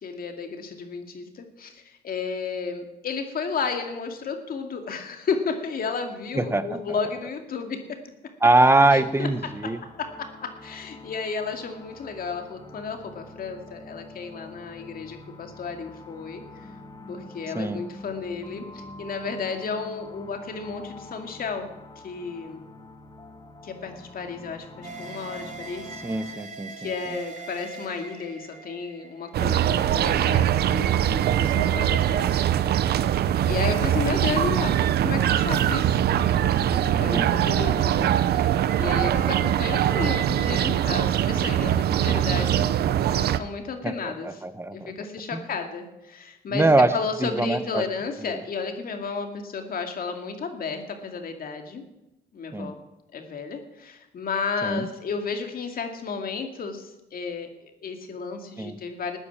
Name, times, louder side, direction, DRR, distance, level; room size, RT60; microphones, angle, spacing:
voice 1, 0.0-7.8 8.9-9.3 10.0-16.7 17.1-21.7 22.0-22.6 23.6-25.9 26.2-26.4 26.8-33.0 33.4-36.0 36.3-38.5 38.8-42.7 43.1-44.3 44.7-51.8 52.3-52.8 53.1-59.2, left 5 dB, 60° left, 5 dB, 2.4 m, -33 dB
voice 2, 6.3-6.8 8.4-9.8 17.5-17.8 26.0-26.9 34.4-34.5 36.9-37.5 43.8-45.1 45.3-45.4 46.5-46.9 47.2-47.8 48.3-48.4 52.5-52.7 54.6-54.9 58.6-58.8, right 2 dB, 15° right, 12 dB, 1.1 m, -23 dB
sound 1, 8.8-26.4, left 2 dB, 25° left, 2.1 m, -45 dB
sound 2, 24.8-30.2, right 4 dB, 45° right, 2.6 m, -42 dB
sound 3, 29.3-43.4, right 11 dB, 70° right, 0.7 m, -22 dB
14.0 x 9.8 x 7.3 m, 0.95 s
cardioid pair, 80°, 17 cm